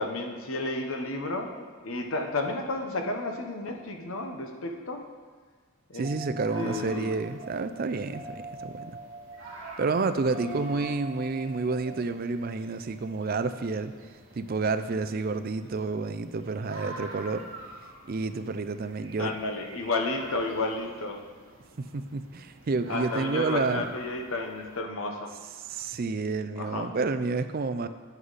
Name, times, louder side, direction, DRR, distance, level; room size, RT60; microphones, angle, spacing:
voice 1, 0.0-5.0 5.9-6.1 6.5-7.1 10.4-10.7 19.2-21.2 22.9-25.4 26.6-26.9, left 2 dB, 65° left, 3 dB, 1.0 m, -32 dB
voice 2, 5.9-9.0 9.8-13.9 14.3-17.4 18.1-19.4 21.8-23.9 25.6-27.9, right 3 dB, 40° right, 11 dB, 0.4 m, -30 dB
sound 1, 6.0-14.5 17.1-17.2, right 2 dB, 10° right, 2.6 m, -44 dB
sound 2, 6.4-24.8, right 2 dB, 60° right, 1.7 m, -47 dB
9.6 x 8.1 x 4.0 m, 1.5 s
head